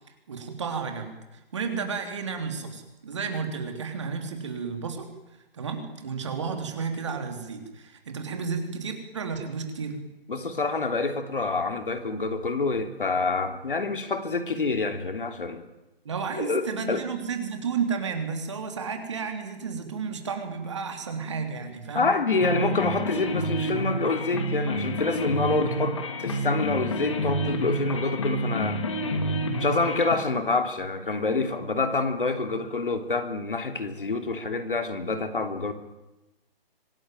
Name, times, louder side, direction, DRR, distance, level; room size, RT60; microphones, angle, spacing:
voice 1, 0.3-1.2 1.5-5.1 5.5-10.0 16.0-22.1, right 5 dB, 30° right, 5 dB, 3.2 m, -32 dB
voice 2, 10.3-15.6 16.4-17.0 21.9-28.8 29.6-35.7, left 3 dB, 60° left, 7 dB, 3.1 m, -27 dB
sound 1, 22.3-30.2, equal, 30° left, 2.5 m, -29 dB
26.0 x 18.5 x 9.1 m, 1.0 s
hypercardioid pair, 175°, 30 cm